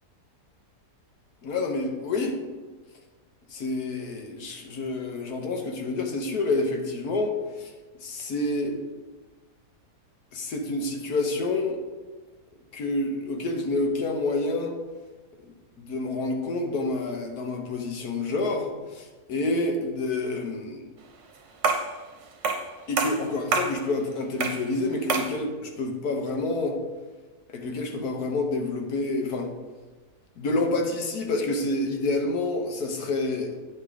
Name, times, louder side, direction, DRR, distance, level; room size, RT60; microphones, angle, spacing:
voice 1, 1.4-2.4 3.5-7.7 8.0-8.8 10.3-11.8 12.7-14.8 15.4-20.8 22.9-26.8 27.5-29.5 30.4-33.5, left 2 dB, 70° left, 3 dB, 1.5 m, -28 dB
sound 1, 21.6-21.9 22.4-22.7 23.0-23.8 24.4-24.7 25.1-25.4, right 4 dB, 55° right, 1.1 m, -26 dB
9.1 x 4.4 x 4.9 m, 1.3 s
omnidirectional pair, 1.7 m